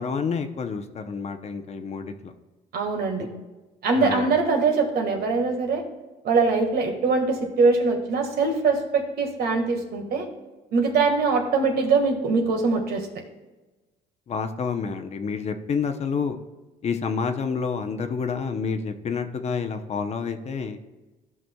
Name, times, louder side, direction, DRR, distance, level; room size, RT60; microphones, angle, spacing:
voice 1, 0.0-2.3 3.2-3.3 4.0-4.4 14.3-16.4 16.8-20.8, left 5 dB, 40° left, 7 dB, 0.7 m, -29 dB
voice 2, 2.7-3.3 3.8-5.8 6.2-10.2 10.7-13.1, right 4 dB, 65° right, 3 dB, 1.7 m, -22 dB
14.0 x 6.0 x 2.3 m, 1.2 s
cardioid pair, 110°, 17 cm